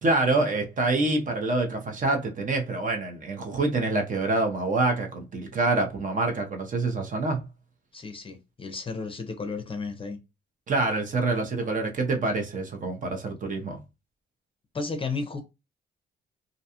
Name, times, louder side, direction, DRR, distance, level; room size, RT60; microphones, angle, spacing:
voice 1, 0.0-7.4 10.7-13.8, right 2 dB, 40° right, 0.7 m, -26 dB
voice 2, 7.9-10.2 14.7-15.4, left 4 dB, 25° left, 0.6 m, -33 dB
2.5 x 2.2 x 2.7 m
cardioid pair, 90°, 20 cm